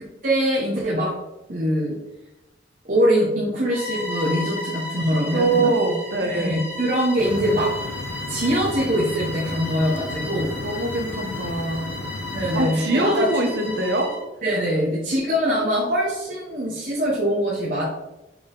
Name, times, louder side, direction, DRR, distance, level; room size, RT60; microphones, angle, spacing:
voice 1, 0.2-1.1 1.5-2.0 2.8-5.7 6.3-7.7 8.3-10.5 12.3-13.3 13.6-13.8 14.4-17.8, equal, 50° right, -5 dB, 1.3 m, -23 dB
Bowed string instrument, 3.7-14.3, left 2 dB, 15° right, 1.9 m, -34 dB
voice 2, 5.3-6.6 10.6-11.9 12.5-14.1, right 2 dB, 70° right, 3 dB, 1.1 m, -23 dB
sound 1, 7.2-12.6, left 2 dB, 85° left, 0.7 m, -34 dB
6.0 x 4.0 x 4.0 m, 0.99 s
head